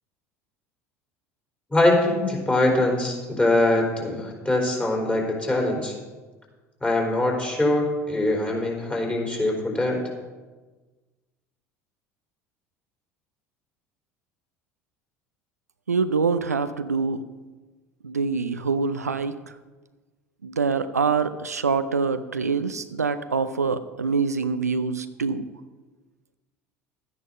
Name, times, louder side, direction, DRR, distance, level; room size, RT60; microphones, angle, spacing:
voice 1, 1.7-5.9 6.8-10.0, left 2 dB, 15° left, -1 dB, 4.0 m, -23 dB
voice 2, 15.9-17.2 18.0-19.3 20.4-25.5, right 5 dB, 90° right, 11 dB, 0.5 m, -25 dB
12.0 x 9.9 x 5.1 m, 1.3 s
figure-of-eight pair, 70°, 8 cm